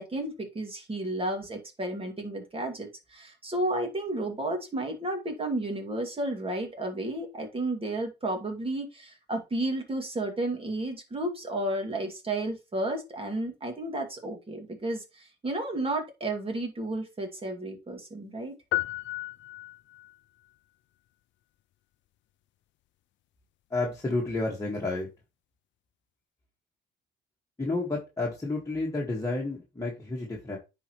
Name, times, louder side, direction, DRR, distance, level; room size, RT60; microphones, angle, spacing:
voice 1, 0.0-18.5, right 1 dB, 30° right, 3 dB, 2.5 m, -32 dB
sound 1, 18.7-20.2, left 17 dB, 70° left, 0.4 m, -33 dB
voice 2, 23.7-25.1 27.6-30.6, left 2 dB, 15° left, -3 dB, 1.8 m, -30 dB
9.8 x 4.4 x 3.2 m, 0.26 s
cardioid pair, 90°, 20 cm